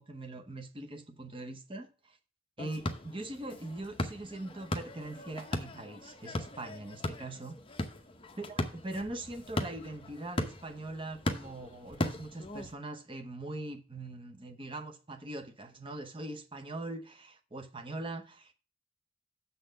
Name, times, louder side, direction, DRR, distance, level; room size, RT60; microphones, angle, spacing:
voice 1, 0.0-2.2 2.6-7.6 8.4-18.5, right 2 dB, 25° right, 0.9 m, -42 dB
sound 1, 2.6-12.7, left 1 dB, 25° left, 0.7 m, -38 dB
6.9 x 4.1 x 6.5 m
head